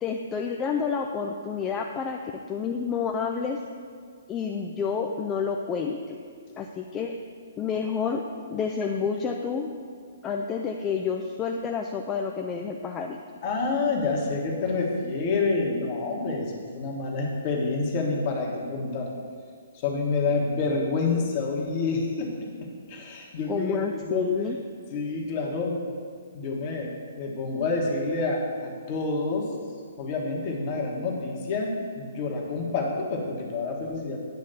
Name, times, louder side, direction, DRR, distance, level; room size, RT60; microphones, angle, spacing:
voice 1, 0.0-2.2 2.5-3.6 4.3-6.2 6.6-7.1 7.6-9.7 10.2-13.2 23.5-24.6, left 6 dB, 20° left, 2 dB, 0.4 m, -29 dB
voice 2, 13.4-19.1 19.7-22.3 22.6-24.3 24.9-25.8 26.3-26.9 27.2-29.5 30.0-34.2, left 3 dB, 40° left, -1 dB, 1.5 m, -28 dB
9.5 x 3.2 x 6.7 m, 2.1 s
figure-of-eight pair, 130°, 0 cm